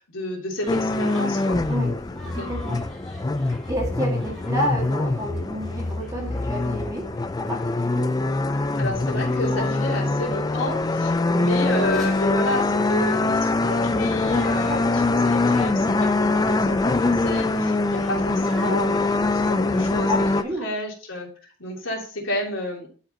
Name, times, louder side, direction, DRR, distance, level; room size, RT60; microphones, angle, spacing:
voice 1, 0.0-1.6 2.4-2.5 8.8-20.2 20.6-22.9, left 1 dB, 75° left, 3.1 m, -31 dB
sound 1, 0.6-19.1, equal, ahead, 2.0 m, -45 dB
sound 2, 0.7-20.4, left 2 dB, 20° left, 0.3 m, -23 dB
voice 2, 1.7-2.8 3.7-8.2 9.5-10.2 14.6-15.1 20.1-20.7, equal, 15° right, 1.9 m, -31 dB
11.5 x 4.9 x 2.8 m
head